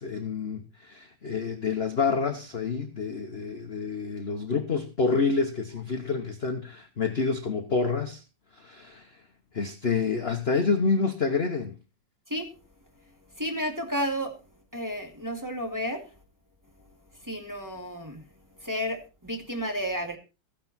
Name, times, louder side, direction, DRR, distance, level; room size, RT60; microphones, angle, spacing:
voice 1, 0.0-8.2 8.6-9.1 9.5-11.7, left 4 dB, 40° left, 6 dB, 1.1 m, -28 dB
voice 2, 13.4-14.3 14.7-16.0 17.2-18.2 18.6-20.2, equal, 10° right, 1 dB, 2.1 m, -31 dB
15.0 x 10.5 x 4.2 m, 0.31 s
omnidirectional pair, 2.1 m